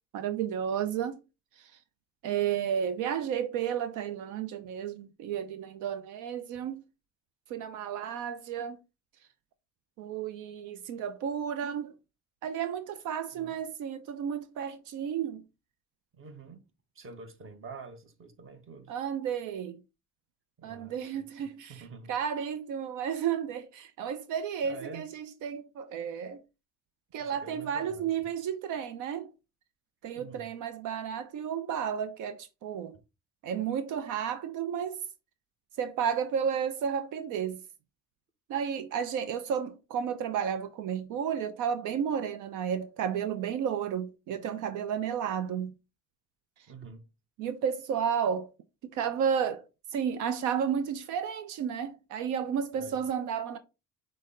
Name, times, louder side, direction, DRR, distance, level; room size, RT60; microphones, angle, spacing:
voice 1, 0.1-1.1 1.6-1.7 2.2-6.8 7.5-8.8 10.0-11.9 12.4-15.4 18.9-19.8 20.6-26.4 27.1-29.3 30.0-32.9 33.4-35.0 35.8-37.6 38.5-45.7 47.4-48.5 48.9-49.7 49.9-53.6, right 8 dB, 90° right, 0.5 m, -32 dB
voice 2, 16.1-16.7 16.9-18.9 20.6-22.1 24.6-25.1 27.2-28.1 30.1-30.5 46.7-47.1 52.7-53.0, right 4 dB, 45° right, 1.0 m, -47 dB
6.3 x 2.1 x 3.7 m
cardioid pair, 90°, 30 cm